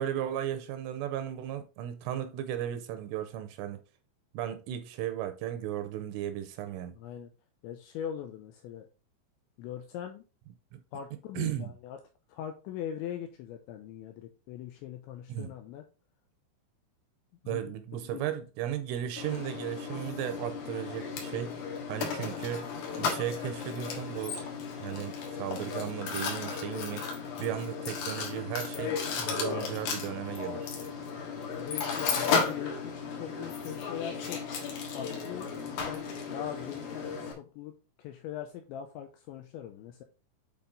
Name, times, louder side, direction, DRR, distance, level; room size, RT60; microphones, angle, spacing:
voice 1, 0.0-3.8 4.3-6.9 10.7-10.8 11.3-11.7 15.3-15.5 17.5-21.6 21.9-22.7 23.0-24.4 24.8-27.0 27.4-30.7, right 11 dB, 80° right, 3.1 m, -35 dB
voice 2, 6.9-7.3 7.6-8.9 9.6-10.2 10.9-12.0 12.3-15.8 17.4-17.7 18.0-18.4 18.7-18.8 22.1-22.4 31.4-34.4 34.9-40.0, left 10 dB, 85° left, 2.7 m, -41 dB
Mechanisms, 19.2-37.3, left 5 dB, 60° left, 2.6 m, -34 dB
8.7 x 4.2 x 3.9 m
omnidirectional pair, 6.0 m